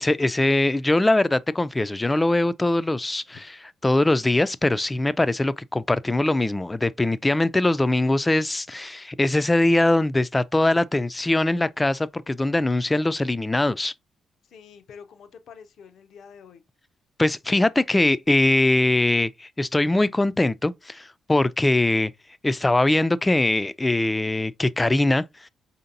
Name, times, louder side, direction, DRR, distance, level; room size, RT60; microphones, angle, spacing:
voice 1, 0.0-3.4 3.8-13.9 17.2-22.1 22.4-25.5, left 2 dB, 20° left, 0.3 m, -22 dB
voice 2, 14.4-16.6, left 6 dB, 65° left, 0.6 m, -47 dB
4.9 x 2.8 x 2.6 m
hypercardioid pair, 45°, 0 cm